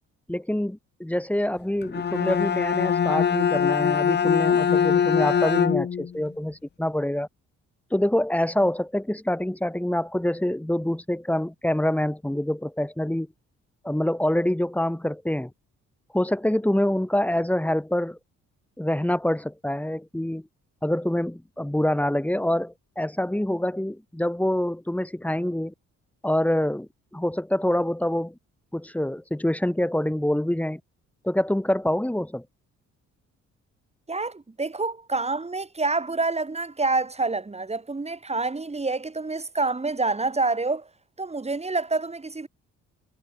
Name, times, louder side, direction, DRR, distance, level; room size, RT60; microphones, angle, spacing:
voice 1, 0.3-7.3 7.9-13.3 13.8-15.5 16.1-18.2 18.8-20.4 20.8-25.7 26.2-28.3 28.7-30.8 31.2-32.4, left 1 dB, 5° left, 3.1 m, -26 dB
Bowed string instrument, 1.8-6.1, left 7 dB, 35° left, 0.8 m, -22 dB
voice 2, 34.1-40.9 41.2-42.5, right 3 dB, 20° right, 5.1 m, -27 dB
cardioid pair, 90°, 30 cm